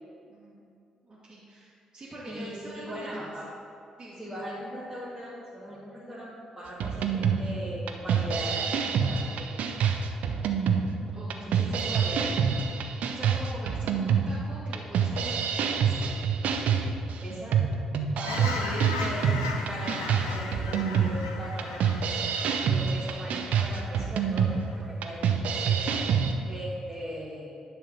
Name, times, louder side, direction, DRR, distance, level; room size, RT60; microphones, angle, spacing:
voice 1, 0.3-0.6 1.0-3.3 4.0-4.2 11.1-12.0 13.1-16.0, right 1 dB, 30° right, -10 dB, 1.9 m, -44 dB
voice 2, 2.3-3.5 4.2-9.5 11.4-12.2 17.2-17.8 18.2-19.4 19.6-22.3 22.7-26.0 26.5-27.5, equal, 5° right, -9 dB, 1.9 m, -39 dB
sound 1, 6.8-26.3, right 6 dB, 55° right, 0.5 m, -27 dB
Fowl / Chirp tweet, 18.2-24.1 24.5-24.7, left 3 dB, 75° left, 0.5 m, -37 dB
10.0 x 4.4 x 5.3 m, 2.5 s
figure-of-eight pair, 40°, 3 cm